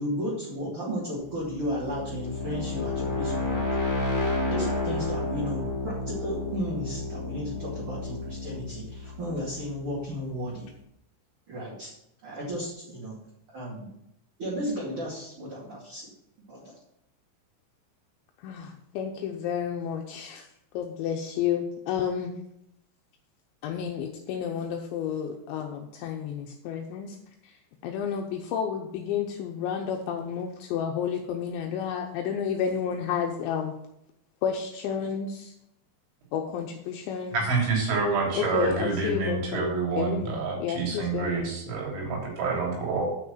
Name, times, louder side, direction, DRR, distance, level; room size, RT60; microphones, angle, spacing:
voice 1, 0.0-3.6 4.5-10.6 11.5-11.9 12.2-13.2 13.5-13.9 14.4-16.1 16.5-16.7, equal, 35° right, -7 dB, 2.4 m, -34 dB
sound 1, 1.3-10.2, left 2 dB, 20° left, 0.4 m, -31 dB
voice 2, 18.4-20.5 20.7-22.4 23.6-27.2 27.8-33.7 34.4-35.5 36.3-37.5 38.3-41.5, left 8 dB, 80° left, 2 dB, 2.8 m, -31 dB
voice 3, 37.3-43.0, right 4 dB, 65° right, -2 dB, 5.4 m, -27 dB
9.4 x 5.9 x 7.2 m, 0.79 s
omnidirectional pair, 5.9 m